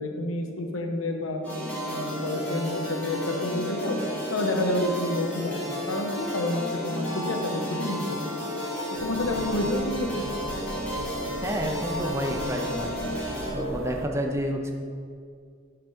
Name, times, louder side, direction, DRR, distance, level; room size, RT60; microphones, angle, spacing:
voice 1, 0.0-1.4 1.9-4.0 4.3-8.2 9.0-10.3, left 1 dB, 90° left, 3 dB, 0.8 m, -29 dB
sound 1, 1.4-13.5, left 1 dB, 10° left, 1.9 m, -33 dB
sound 2, 9.0-14.1, right 1 dB, 80° right, 0.7 m, -36 dB
voice 2, 11.4-12.9 13.5-14.7, equal, 15° right, 3 dB, 0.5 m, -29 dB
6.2 x 5.0 x 5.0 m, 2.2 s
head